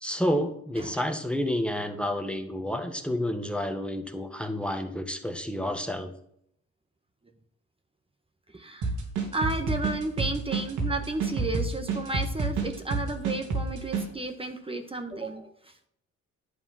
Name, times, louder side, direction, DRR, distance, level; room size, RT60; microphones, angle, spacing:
voice 1, 0.0-6.1, left 1 dB, 5° left, 6 dB, 1.4 m, -30 dB
voice 2, 8.5-8.9 9.3-15.7, right 2 dB, 20° right, 5 dB, 1.3 m, -33 dB
sound 1, 8.8-14.1, right 4 dB, 85° right, 3.0 m, -29 dB
11.0 x 7.1 x 5.7 m, 0.71 s
cardioid pair, 90°, 30 cm